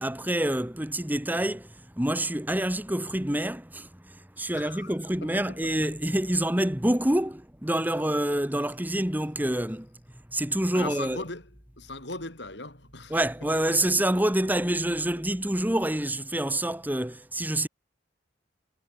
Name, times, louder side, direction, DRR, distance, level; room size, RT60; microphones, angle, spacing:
voice 1, 0.0-10.0 10.3-11.3 13.1-17.7, right 1 dB, 10° right, 1.6 m, -27 dB
voice 2, 4.5-4.9 5.2-5.3 5.6-5.7 10.7-11.4 11.8-13.2 13.7-13.8, left 2 dB, 70° left, 7.9 m, -38 dB
head